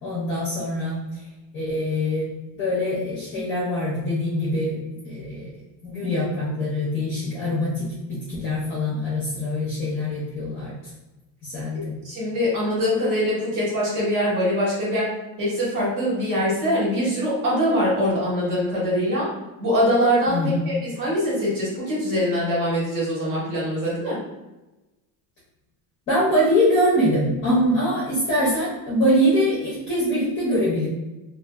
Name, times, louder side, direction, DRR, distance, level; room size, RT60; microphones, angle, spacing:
voice 1, 0.0-1.2 1.5-2.3 2.6-4.8 5.0-5.5 5.8-10.9 11.4-12.0 20.3-20.8 26.1-30.9, equal, 30° left, -8 dB, 0.6 m, -23 dB
voice 2, 11.7-15.1 15.4-19.3 19.6-20.4 20.6-24.2, equal, 40° right, -7 dB, 1.3 m, -23 dB
2.6 x 2.5 x 2.3 m, 1.0 s
cardioid pair, 175°, 44 cm